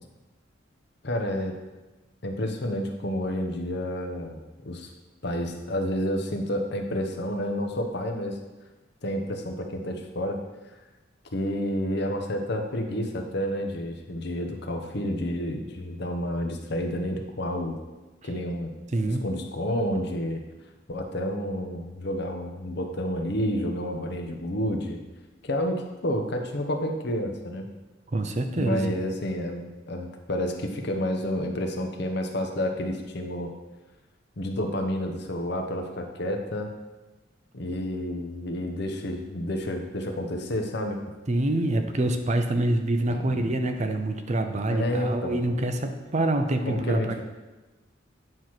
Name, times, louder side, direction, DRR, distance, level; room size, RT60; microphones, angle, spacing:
voice 1, 1.0-1.5 2.2-4.9 5.2-8.4 9.0-10.4 11.3-17.8 18.2-18.7 19.2-20.4 20.9-25.0 25.4-27.7 28.6-33.5 34.4-36.7 37.5-41.0 43.1-43.3 44.7-45.4 46.7-47.2, equal, 60° left, 4 dB, 0.9 m, -30 dB
voice 2, 18.9-19.2 28.1-28.9 41.3-47.2, right 1 dB, 35° right, 6 dB, 0.6 m, -26 dB
9.1 x 3.1 x 5.8 m, 1.2 s
head